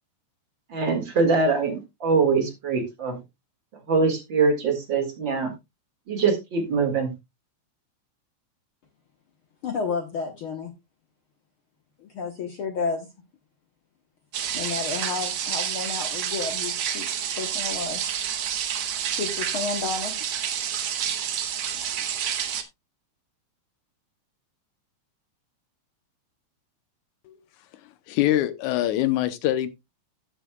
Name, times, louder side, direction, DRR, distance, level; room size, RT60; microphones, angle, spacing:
voice 1, 0.7-3.2 3.9-5.5 6.1-7.1, right 4 dB, 40° right, 2.5 m, -23 dB
voice 2, 9.6-10.7 12.1-13.1 14.5-17.0 17.4-18.0 19.1-20.1, left 4 dB, 60° left, 1.6 m, -31 dB
sound 1, 14.3-22.6, right 9 dB, 60° right, 1.5 m, -29 dB
voice 3, 28.1-29.7, left 13 dB, 90° left, 2.3 m, -23 dB
15.0 x 7.4 x 2.3 m
omnidirectional pair, 3.4 m